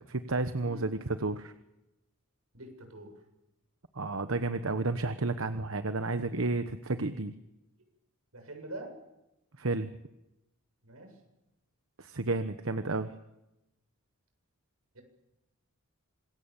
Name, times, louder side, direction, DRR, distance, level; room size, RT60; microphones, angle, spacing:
voice 1, 0.1-1.5 4.0-7.3 9.6-9.9 12.0-13.1, right 3 dB, 65° right, 10 dB, 1.2 m, -31 dB
voice 2, 2.5-3.1 8.3-8.9 10.8-11.1 14.9-15.0, right 1 dB, 90° right, 5 dB, 7.3 m, -44 dB
26.0 x 21.5 x 7.3 m, 0.92 s
head